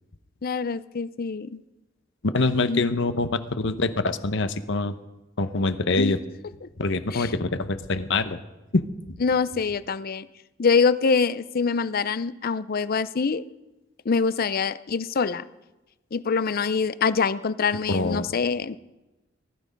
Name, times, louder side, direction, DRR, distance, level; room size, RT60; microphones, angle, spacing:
voice 1, 0.4-1.6 2.6-3.0 6.0-6.2 6.6-6.7 7.1-7.3 9.2-10.3 10.6-13.4 14.1-15.5 16.1-18.8, left 5 dB, 50° left, 15 dB, 0.5 m, -25 dB
voice 2, 2.2-4.9 5.4-6.2 6.8-8.4 8.7-8.9 17.9-18.3, left 3 dB, 65° left, 11 dB, 0.9 m, -25 dB
19.0 x 12.5 x 5.2 m, 1.0 s
head